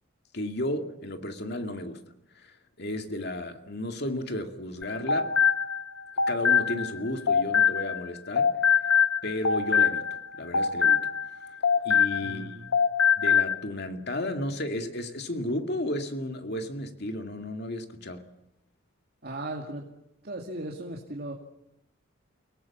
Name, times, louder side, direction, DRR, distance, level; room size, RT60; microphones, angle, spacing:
voice 1, 0.3-2.0 2.4-5.3 6.3-8.6 9.2-10.1 10.4-11.1 11.8-12.5 13.2-18.2, left 1 dB, 55° left, 2.3 m, -33 dB
sound 1, 4.8-8.1 8.4-12.4 12.7-13.5, left 7 dB, 80° left, 0.9 m, -23 dB
voice 2, 12.2-12.7 19.2-19.9 20.2-21.3, right 1 dB, 50° right, 2.5 m, -37 dB
29.5 x 18.5 x 7.3 m
head